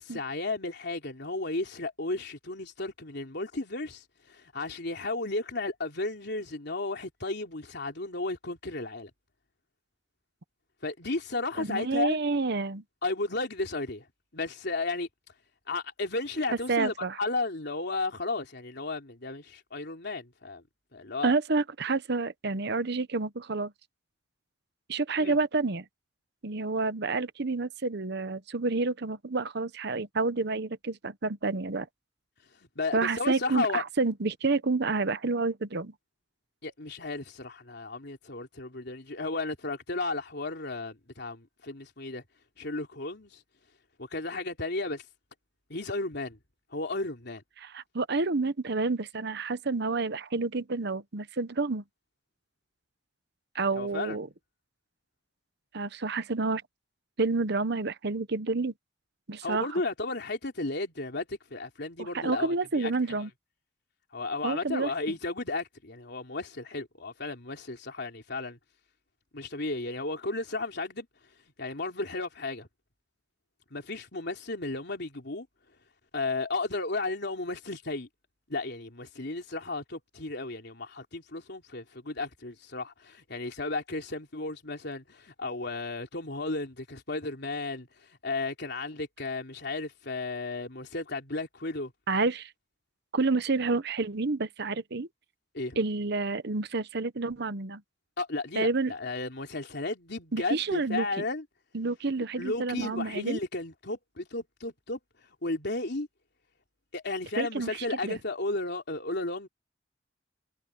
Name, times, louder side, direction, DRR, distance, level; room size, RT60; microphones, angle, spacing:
voice 1, 0.0-9.1 10.8-12.2 13.0-14.1 14.3-15.1 15.7-20.6 20.9-21.3 25.2-25.4 32.8-33.8 36.6-42.2 42.6-43.4 44.0-45.0 45.7-46.4 46.7-47.4 53.8-54.2 59.4-62.9 64.1-68.6 69.3-71.1 71.6-72.7 73.7-75.5 76.1-78.1 78.5-91.9 95.5-95.8 98.2-101.4 102.2-105.0 105.4-106.1 106.9-109.5, left 3 dB, 65° left, 3.6 m, -34 dB
voice 2, 11.6-12.8 16.7-17.2 21.2-23.7 24.9-25.8 26.4-31.9 32.9-35.9 47.6-51.8 53.5-54.3 55.7-56.6 57.2-58.7 59.3-59.8 62.0-63.3 64.4-64.9 92.1-92.5 93.1-95.1 95.8-97.8 98.6-98.9 100.3-101.2 101.7-103.4 107.4-108.2, right 3 dB, 60° right, 1.0 m, -29 dB
head